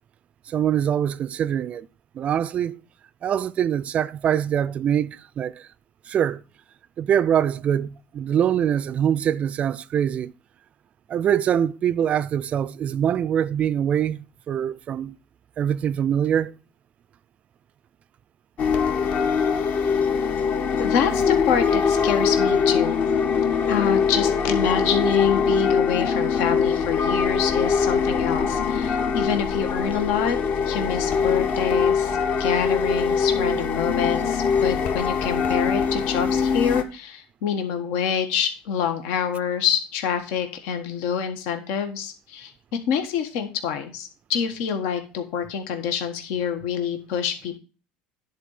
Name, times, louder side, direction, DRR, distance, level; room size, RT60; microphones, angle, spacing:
voice 1, 0.5-1.9 2.2-2.8 3.2-5.5 6.1-6.4 7.0-10.3 11.1-15.1 15.6-16.5, right 9 dB, 40° right, 0.4 m, -23 dB
sound 1, 18.6-36.8, left 6 dB, 50° left, 1.3 m, -22 dB
voice 2, 20.8-23.0 23.7-30.4 30.7-42.5 42.9-47.6, left 7 dB, 75° left, 1.5 m, -26 dB
10.5 x 4.4 x 6.6 m
supercardioid pair, 115°, 4 cm